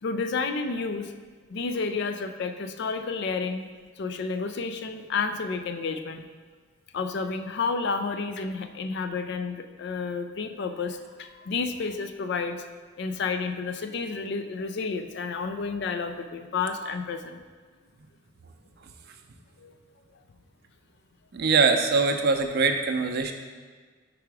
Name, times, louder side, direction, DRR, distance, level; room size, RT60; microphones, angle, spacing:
voice 1, 0.0-1.1 1.5-3.7 4.0-6.2 6.9-12.6 13.0-17.4 19.6-19.7, left 4 dB, 60° left, 9 dB, 0.4 m, -30 dB
voice 2, 21.3-23.3, right 4 dB, 55° right, 5 dB, 0.5 m, -22 dB
4.9 x 4.6 x 4.7 m, 1.5 s
head